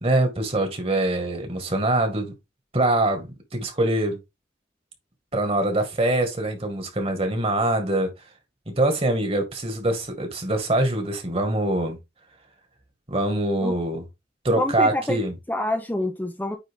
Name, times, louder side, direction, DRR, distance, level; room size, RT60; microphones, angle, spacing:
voice 1, 0.0-2.3 2.7-4.2 5.3-8.1 8.7-12.0 13.1-14.0 14.4-15.3, right 1 dB, 30° right, 2.0 m, -24 dB
voice 2, 14.6-15.2 15.5-16.6, left 1 dB, 10° left, 0.8 m, -26 dB
9.1 x 3.8 x 3.7 m
head